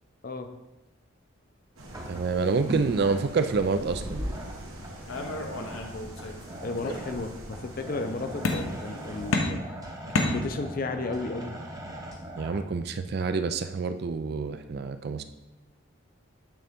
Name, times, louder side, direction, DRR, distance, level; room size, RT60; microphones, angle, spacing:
sound 1, 1.8-9.4, right 1 dB, 75° right, 1.3 m, -40 dB
sound 2, 1.9-12.6, right 1 dB, 15° right, 0.7 m, -42 dB
voice 1, 2.1-4.2 12.4-15.2, right 4 dB, 50° right, 10 dB, 0.3 m, -27 dB
sound 3, 5.1-6.4 6.8-7.5 8.4-9.0 9.3-10.9, left 2 dB, 85° left, 0.8 m, -30 dB
voice 2, 6.6-9.6 10.1-11.5, left 3 dB, 45° left, 7 dB, 0.5 m, -33 dB
8.9 x 3.8 x 3.6 m, 0.97 s
head